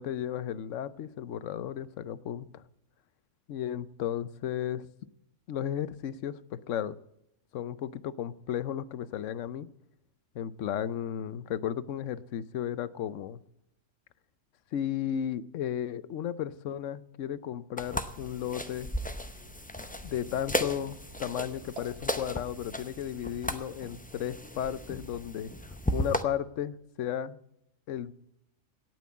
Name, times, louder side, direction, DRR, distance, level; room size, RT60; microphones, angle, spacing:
voice 1, 0.0-2.6 3.5-4.8 5.5-7.0 7.5-9.7 10.3-13.4 14.7-18.9 20.0-25.5 25.9-27.4 27.9-28.1, left 10 dB, 75° left, 16 dB, 1.0 m, -34 dB
sound 1, 17.8-26.2, left 1 dB, 10° left, 0.5 m, -35 dB
sound 2, 18.0-23.8, right 2 dB, 55° right, 2.8 m, -53 dB
17.5 x 6.2 x 8.4 m, 0.79 s
omnidirectional pair, 1.3 m